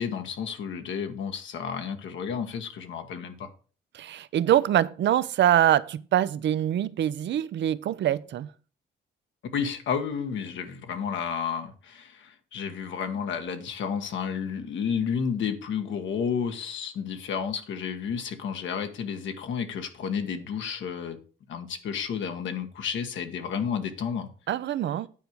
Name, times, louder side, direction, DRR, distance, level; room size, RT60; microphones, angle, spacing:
voice 1, 0.0-3.5 9.5-21.2 21.5-24.3, left 7 dB, 70° left, 1.4 m, -31 dB
voice 2, 3.9-8.5 24.5-25.1, right 11 dB, 65° right, 0.6 m, -24 dB
9.2 x 4.6 x 6.6 m
cardioid pair, 90°, 20 cm